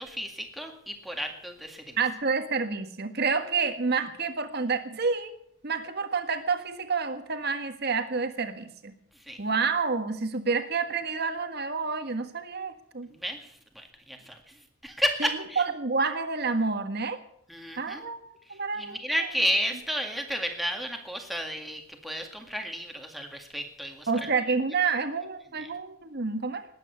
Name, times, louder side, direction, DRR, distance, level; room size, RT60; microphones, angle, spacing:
voice 1, 0.0-2.0 9.3-9.4 13.1-14.5 14.8-15.6 17.5-18.0 18.5-24.3 25.6-25.7, equal, ahead, 3 dB, 2.0 m, -32 dB
voice 2, 2.0-5.4 5.6-8.9 9.4-13.1 15.2-15.3 15.6-17.2 17.8-19.0 24.1-26.7, right 4 dB, 50° right, 8 dB, 1.5 m, -29 dB
20.0 x 9.0 x 7.0 m, 0.70 s
head